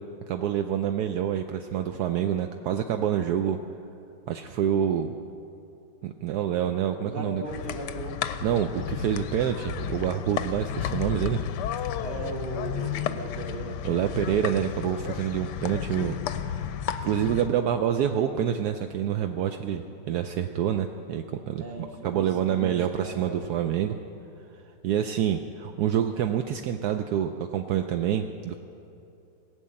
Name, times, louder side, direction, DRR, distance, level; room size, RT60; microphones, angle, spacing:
voice 1, 0.3-3.6 4.3-5.1 6.0-7.4 8.4-11.4 13.8-16.2 17.0-21.6 22.0-24.0 24.8-28.6, right 9 dB, 80° right, 6 dB, 0.9 m, -27 dB
voice 2, 7.0-8.2 12.0-13.8 21.6-23.4, right 2 dB, 35° right, 3 dB, 1.2 m, -37 dB
sound 1, 7.4-17.5, left 8 dB, 70° left, 1.1 m, -32 dB
18.0 x 6.4 x 8.6 m, 2.7 s
omnidirectional pair, 2.2 m